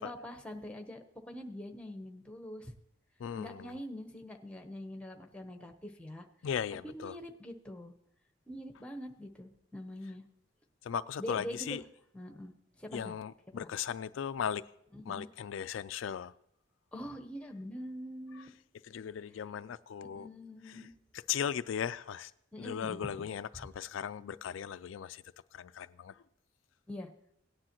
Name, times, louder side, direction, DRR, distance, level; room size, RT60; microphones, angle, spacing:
voice 1, 0.0-2.7 3.3-6.2 6.8-7.9 8.5-10.2 11.2-11.8 12.1-13.1 14.9-15.3 16.9-18.6 20.1-20.9 22.5-23.3 26.9-27.1, left 1 dB, 5° left, 0.9 m, -44 dB
voice 2, 3.2-3.7 6.4-7.2 10.8-11.8 12.9-14.6 15.1-16.3 18.9-20.3 21.1-22.3 22.6-25.2 25.5-26.2, left 8 dB, 85° left, 0.4 m, -37 dB
17.5 x 9.9 x 3.0 m
head